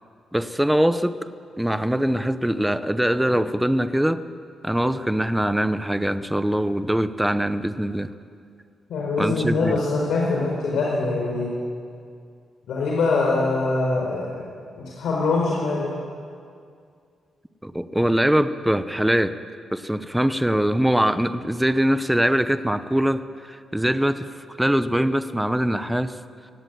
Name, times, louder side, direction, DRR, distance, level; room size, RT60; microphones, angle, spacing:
voice 1, 0.3-1.2 1.6-4.2 4.6-8.1 9.2-9.8 17.6-19.4 19.7-24.2 24.6-26.2, equal, 5° right, 12 dB, 0.7 m, -22 dB
voice 2, 8.9-11.5 12.7-14.4 14.8-16.0, left 3 dB, 75° left, -3 dB, 4.4 m, -23 dB
23.0 x 17.5 x 9.3 m, 2.3 s
wide cardioid pair, 175°, 0 cm